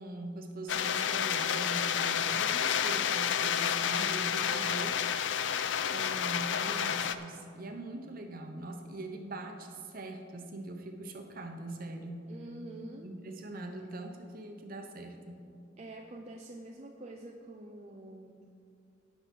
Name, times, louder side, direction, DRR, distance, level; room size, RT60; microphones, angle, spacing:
voice 1, 0.0-5.0 5.9-12.2 13.0-15.4, right 2 dB, 50° right, 4 dB, 1.0 m, -42 dB
sound 1, 0.7-7.1, left 8 dB, 65° left, 0.4 m, -30 dB
voice 2, 12.3-13.1 15.8-18.5, right 1 dB, 35° right, 1 dB, 0.6 m, -46 dB
17.0 x 5.7 x 4.5 m, 2.4 s
head